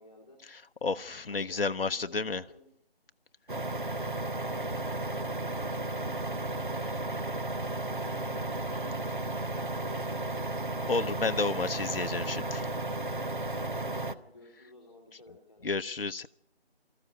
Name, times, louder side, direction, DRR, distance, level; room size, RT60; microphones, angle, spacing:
voice 1, 0.0-0.4 0.9-2.7 3.5-6.8 7.3-9.0 9.3-10.6 14.0-15.8, left 1 dB, 10° left, -8 dB, 1.7 m, -54 dB
voice 2, 0.5-2.4 10.9-12.7 15.6-16.3, left 4 dB, 65° left, 9 dB, 0.7 m, -31 dB
sound 1, 3.5-14.1, right 2 dB, 50° right, 1.0 m, -34 dB
21.0 x 14.0 x 9.2 m, 0.75 s
figure-of-eight pair, 165°, 31 cm